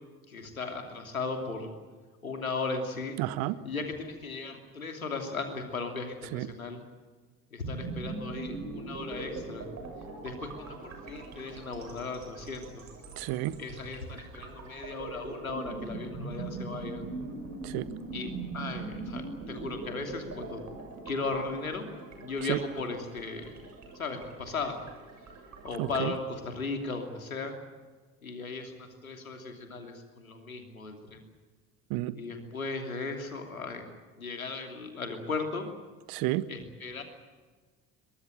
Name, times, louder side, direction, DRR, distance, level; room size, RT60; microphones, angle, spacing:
voice 1, 0.3-1.7 2.2-3.2 3.6-6.8 7.5-9.7 10.2-12.8 13.6-17.0 18.1-20.6 21.0-21.9 22.2-23.5 23.9-24.8 25.6-27.6 28.2-31.2 32.2-33.9 34.1-35.7 36.5-37.0, left 3 dB, 85° left, 4 dB, 3.0 m, -36 dB
voice 2, 3.2-3.6 6.3-6.5 13.2-13.5 17.6-17.9 22.5-22.6 25.8-26.1 31.9-32.1 36.1-36.4, right 17 dB, 60° right, 15 dB, 1.4 m, -30 dB
sound 1, 7.6-26.2, right 3 dB, 45° right, 7.7 m, -42 dB
23.0 x 21.5 x 9.0 m, 1.4 s
figure-of-eight pair, 60°, 41 cm